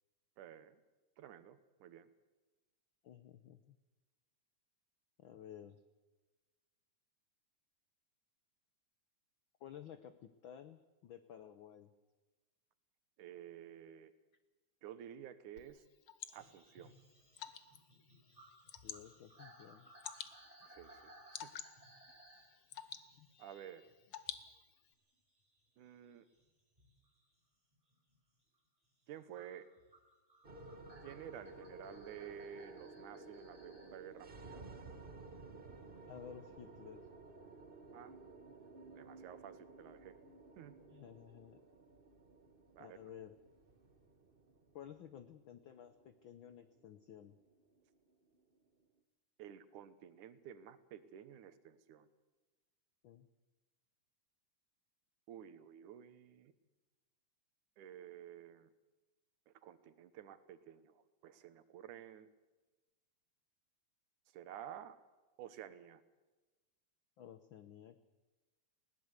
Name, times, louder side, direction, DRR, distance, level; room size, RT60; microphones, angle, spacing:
voice 1, 0.4-0.8 1.2-2.1 13.2-14.1 14.8-15.8 16.3-16.9 20.7-21.1 21.4-21.5 23.4-23.9 25.8-26.3 29.1-29.7 31.0-34.7 37.9-38.1 38.9-40.1 40.6-40.7 42.8-43.0 49.4-52.1 55.3-56.5 57.8-58.7 59.5-62.3 64.3-65.0 65.4-66.0, right 10 dB, 90° right, 12 dB, 2.7 m, -52 dB
voice 2, 3.0-3.8 5.2-5.8 9.6-11.9 18.8-19.9 36.1-37.1 40.9-41.6 42.8-43.3 44.7-47.4 53.0-53.3 67.2-68.0, left 9 dB, 85° left, 11 dB, 1.0 m, -54 dB
Water / Drip, 15.6-24.9, left 9 dB, 60° left, 1.6 m, -52 dB
sound 1, 16.3-24.6 24.9-27.3 27.7-28.2 29.3-34.0 35.3-35.4, right 1 dB, 10° right, 5.6 m, -62 dB
sound 2, 30.4-48.8, right 3 dB, 50° right, 0.6 m, -55 dB
20.0 x 17.5 x 8.0 m, 1.2 s
omnidirectional pair, 3.4 m